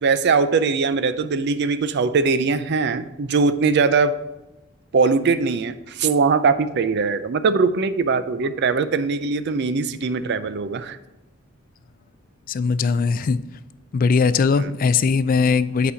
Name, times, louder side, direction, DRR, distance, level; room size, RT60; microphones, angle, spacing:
voice 1, 0.0-4.2 4.9-11.0 14.6-14.7, right 4 dB, 55° right, 12 dB, 0.4 m, -21 dB
voice 2, 12.5-13.4 13.9-15.9, left 5 dB, 45° left, 14 dB, 0.3 m, -19 dB
8.4 x 4.1 x 5.6 m, 1.0 s
head